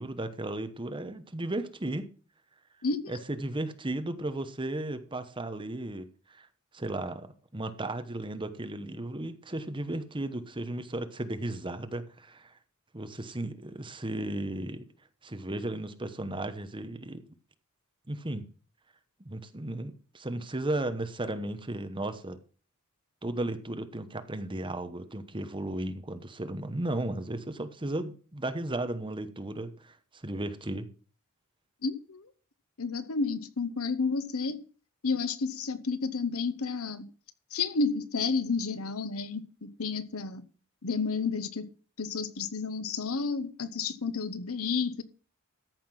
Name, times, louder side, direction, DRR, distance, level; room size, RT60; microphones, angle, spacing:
voice 1, 0.0-2.1 3.1-6.5 6.7-12.6 12.9-14.8 15.2-17.2 18.1-18.4 19.2-22.4 23.2-30.9, right 1 dB, 20° right, 1.0 m, -35 dB
voice 2, 2.8-3.1 31.8-32.3 32.8-34.6 35.0-37.0 37.5-40.4 40.8-41.7 42.0-45.0, left 4 dB, 75° left, 1.0 m, -31 dB
13.5 x 5.9 x 5.8 m
head